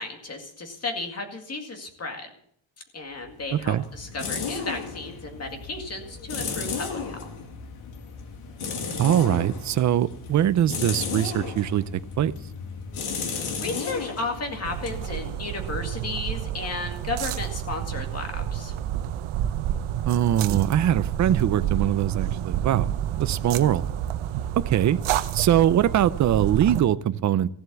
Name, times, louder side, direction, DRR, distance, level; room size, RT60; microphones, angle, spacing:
voice 1, 0.0-2.3 2.9-7.5 13.1-18.7, left 3 dB, 30° left, 4 dB, 2.2 m, -34 dB
sound 1, 3.2-15.9, left 5 dB, 90° left, 2.3 m, -34 dB
voice 2, 3.5-3.8 9.0-12.3 20.0-22.9 23.2-23.8 24.6-25.0 25.3-27.5, right 11 dB, 40° right, 14 dB, 0.5 m, -22 dB
sound 2, 14.6-26.8, right 11 dB, 80° right, 0.9 m, -29 dB
15.5 x 7.9 x 6.9 m, 0.64 s
cardioid pair, 170°, 48 cm